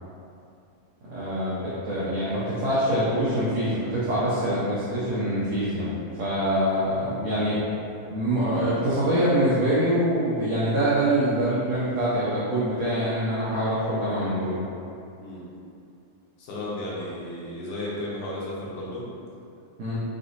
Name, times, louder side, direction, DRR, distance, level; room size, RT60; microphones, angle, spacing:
voice 1, 1.1-7.6 8.1-14.6 19.8-20.0, right 1 dB, 80° right, -10 dB, 1.5 m, -25 dB
voice 2, 16.4-19.0, left 1 dB, 75° left, -6 dB, 1.8 m, -34 dB
6.0 x 2.6 x 2.6 m, 2.6 s
omnidirectional pair, 4.0 m